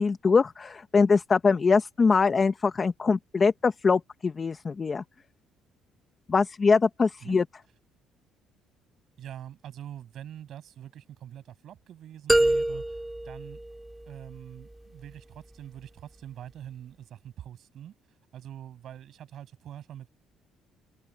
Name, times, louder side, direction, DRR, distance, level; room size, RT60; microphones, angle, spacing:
voice 1, 0.0-5.0 6.3-7.4, left 4 dB, 25° left, 0.9 m, -23 dB
voice 2, 9.2-13.6 14.1-20.1, right 10 dB, 55° right, 6.7 m, -44 dB
sound 1, 12.3-14.3, right 1 dB, 5° right, 2.1 m, -26 dB
open air
cardioid pair, 140°, 0 cm